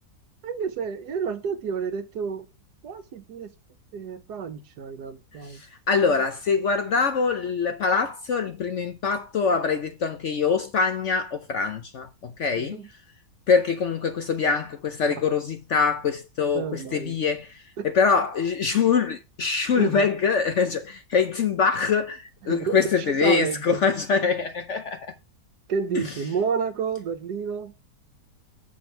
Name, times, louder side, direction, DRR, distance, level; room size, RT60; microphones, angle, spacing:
voice 1, 0.4-2.5 2.8-3.5 3.9-5.6 12.6-12.9 15.2-15.3 16.5-17.2 17.8-17.9 19.8-20.1 22.4-23.8 25.7-27.7, right 6 dB, 65° right, 1.5 m, -30 dB
voice 2, 5.9-12.8 13.5-17.5 17.8-25.1, left 5 dB, 60° left, 0.8 m, -24 dB
7.0 x 6.2 x 4.5 m
omnidirectional pair, 1.9 m